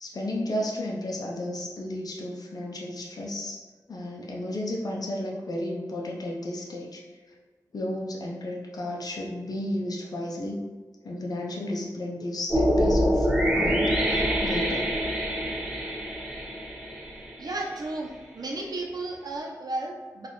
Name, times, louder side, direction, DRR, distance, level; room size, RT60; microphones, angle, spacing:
voice 1, 0.0-3.6 3.9-7.0 7.7-10.6 11.0-14.9, left 1 dB, 65° left, -2 dB, 0.5 m, -33 dB
sound 1, 12.5-17.7, equal, 10° right, 1.2 m, -25 dB
voice 2, 17.4-18.1 18.3-20.3, right 2 dB, 70° right, 0 dB, 0.6 m, -33 dB
3.9 x 2.4 x 3.0 m, 1.4 s
wide cardioid pair, 60°, 7 cm